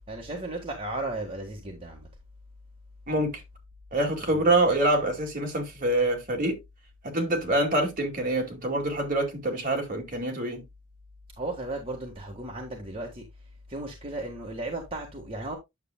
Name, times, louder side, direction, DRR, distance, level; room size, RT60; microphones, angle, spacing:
voice 1, 0.1-2.1 4.3-4.5 11.4-13.3 13.7-15.6, right 2 dB, 30° right, 1.6 m, -35 dB
voice 2, 3.9-6.6 7.0-10.6, right 1 dB, 45° right, 2.2 m, -25 dB
9.5 x 6.9 x 2.2 m
head